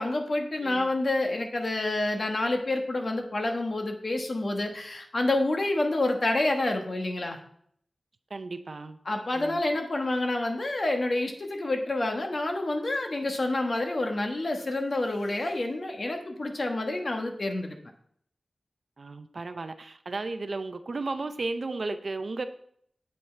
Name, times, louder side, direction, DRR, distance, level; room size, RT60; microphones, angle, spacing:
voice 1, 0.0-7.4 9.0-17.8, left 2 dB, 45° left, 3 dB, 1.2 m, -28 dB
voice 2, 8.3-9.0 9.3-9.6 19.0-22.5, right 3 dB, 55° right, 9 dB, 0.6 m, -34 dB
7.9 x 5.5 x 4.4 m, 0.65 s
wide cardioid pair, 105°, 0 cm